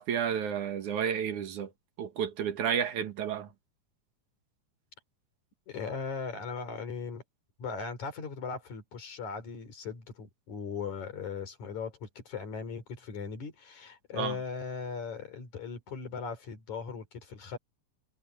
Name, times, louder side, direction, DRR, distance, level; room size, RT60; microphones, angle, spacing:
voice 1, 0.0-1.7 2.0-3.5 14.1-14.3, right 8 dB, 80° right, 3.1 m, -31 dB
voice 2, 5.7-7.2 7.6-17.6, left 5 dB, 70° left, 5.1 m, -38 dB
omnidirectional pair, 3.4 m